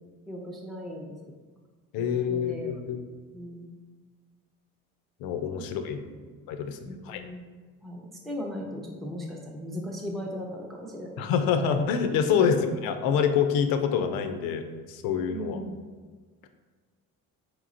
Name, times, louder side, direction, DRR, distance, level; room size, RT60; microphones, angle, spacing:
voice 1, 0.3-1.2 2.0-2.7 3.3-3.7 5.5-5.6 6.9-7.5 7.8-11.3 12.4-12.7 15.3-15.8, equal, ahead, -1 dB, 0.4 m, -37 dB
voice 2, 1.9-3.0 5.2-6.0 6.5-7.2 11.2-12.6 12.8-15.6, left 7 dB, 85° left, 8 dB, 0.5 m, -26 dB
4.5 x 3.0 x 2.5 m, 1.5 s
cardioid pair, 115°, 34 cm